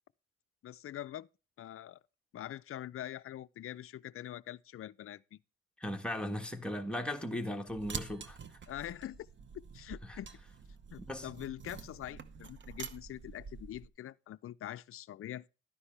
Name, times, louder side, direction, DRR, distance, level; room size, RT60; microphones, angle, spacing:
voice 1, 0.6-1.3 1.6-2.0 2.3-5.4 8.7-9.3 9.7-10.3 10.9-15.5, left 12 dB, 50° left, 0.5 m, -44 dB
voice 2, 5.8-8.4 10.1-10.2 11.1-11.3, left 1 dB, 5° left, 1.4 m, -37 dB
sound 1, 7.7-13.9, right 6 dB, 40° right, 0.9 m, -47 dB
12.0 x 9.7 x 3.3 m
cardioid pair, 90°, 30 cm